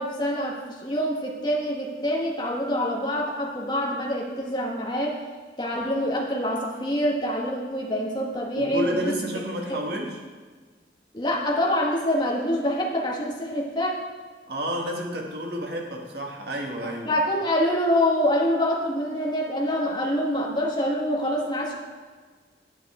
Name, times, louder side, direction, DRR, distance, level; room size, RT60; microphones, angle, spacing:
voice 1, 0.0-5.2 5.6-9.1 9.7-9.8 11.1-14.0 16.8-21.8, equal, 25° left, -2 dB, 1.6 m, -26 dB
voice 2, 8.5-10.2 14.5-17.2, equal, 60° right, 0 dB, 1.6 m, -30 dB
9.2 x 8.8 x 4.3 m, 1.5 s
head